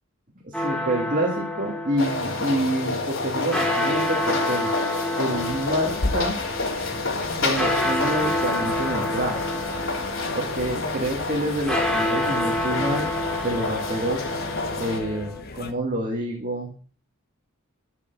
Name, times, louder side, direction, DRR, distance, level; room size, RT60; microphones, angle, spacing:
voice 1, 0.4-4.7 5.2-6.4 7.4-9.4 10.3-13.1 13.4-14.3 14.8-16.7, right 1 dB, 40° right, 1 dB, 2.1 m, -27 dB
sound 1, 0.5-15.4, left 1 dB, 5° left, 2.2 m, -29 dB
sound 2, 2.0-15.0, left 3 dB, 65° left, 3.6 m, -30 dB
sound 3, 5.3-15.7, left 2 dB, 45° left, 1.2 m, -36 dB
12.0 x 6.8 x 7.0 m, 0.41 s
head